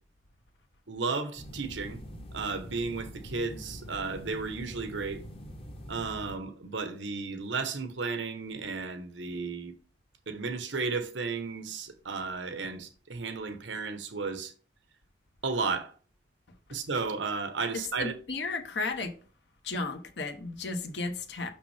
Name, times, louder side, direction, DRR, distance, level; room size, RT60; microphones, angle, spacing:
voice 1, 0.9-2.0 2.3-5.2 5.9-9.7 10.3-14.5 15.4-15.9 16.7-18.1, right 4 dB, 85° right, 1.1 m, -33 dB
sound 1, 1.4-6.4, equal, 30° left, 0.9 m, -44 dB
voice 2, 17.7-19.2 19.6-21.5, left 3 dB, 70° left, 0.9 m, -34 dB
6.2 x 5.8 x 3.4 m
head